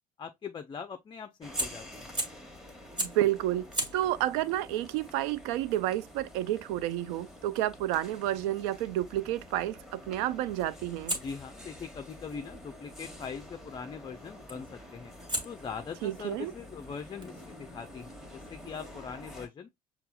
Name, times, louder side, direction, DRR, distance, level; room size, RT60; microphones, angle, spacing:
voice 1, 0.2-2.1 11.2-15.1 15.4-19.7, left 6 dB, 25° left, 0.4 m, -42 dB
sound 1, 1.4-19.5, left 1 dB, ahead, 1.1 m, -49 dB
Fire, 1.5-2.5 3.0-3.3 3.7-8.6 11.1-13.2 14.5-14.8 15.3-18.7, right 1 dB, 20° right, 1.3 m, -41 dB
voice 2, 3.0-3.6 3.9-11.2 16.0-16.5, right 13 dB, 60° right, 0.4 m, -30 dB
6.6 x 2.4 x 2.2 m
figure-of-eight pair, 60°, 21 cm